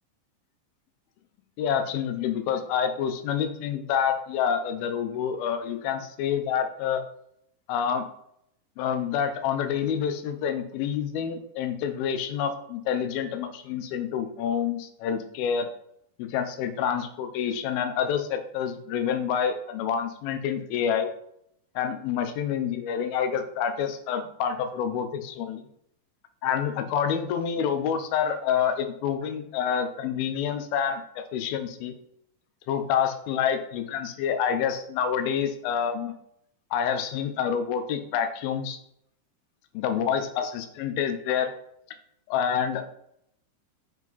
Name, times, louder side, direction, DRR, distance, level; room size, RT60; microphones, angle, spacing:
voice 1, 1.6-7.0 7.7-8.1 8.8-15.7 16.2-21.1 21.8-25.6 26.4-31.9 32.7-36.1 36.7-38.8 39.7-41.5 42.3-42.9, left 8 dB, 85° left, 7 dB, 2.6 m, -27 dB
6.4 x 5.0 x 4.0 m, 0.74 s
omnidirectional pair, 4.2 m